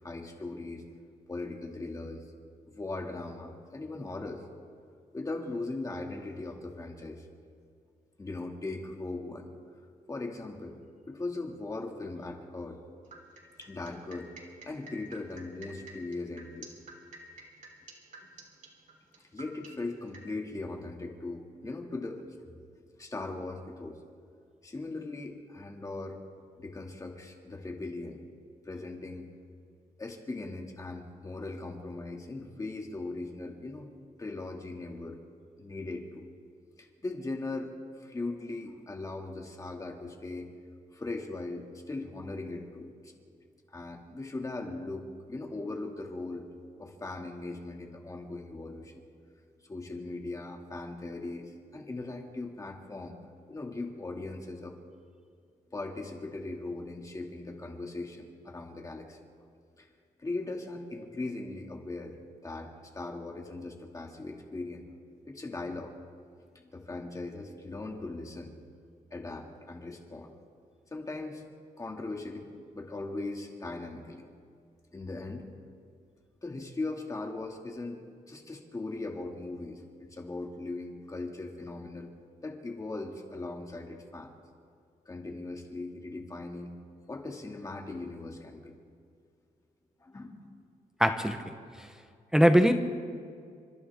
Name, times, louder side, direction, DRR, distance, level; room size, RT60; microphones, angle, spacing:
voice 1, 0.0-0.9 1.3-2.2 2.7-4.4 5.1-7.3 8.2-9.5 10.1-10.8 11.1-12.8 13.6-14.3 14.6-16.7 19.3-22.2 23.0-24.0 24.6-26.2 26.6-28.2 28.6-29.3 30.0-33.9 34.2-35.2 35.6-36.3 36.8-37.7 38.0-40.5 40.9-43.1 43.7-46.5 46.8-49.0 49.6-53.2 53.5-54.7 55.7-59.2 59.8-59.9 60.2-62.2 62.4-64.8 65.2-65.9 66.5-68.5 69.1-70.3 70.9-71.4 71.8-74.3 74.9-75.5 76.4-78.0 78.3-82.1 82.4-84.3 85.1-86.7 87.1-88.7 90.0-90.5, left 2 dB, 20° left, 1 dB, 2.2 m, -39 dB
sound 1, 13.1-20.2, right 3 dB, 60° right, 3.3 m, -49 dB
voice 2, 91.0-91.9 92.3-92.7, equal, 5° right, 5 dB, 0.9 m, -23 dB
29.0 x 25.5 x 3.6 m, 2.2 s
wide cardioid pair, 165°, 15 cm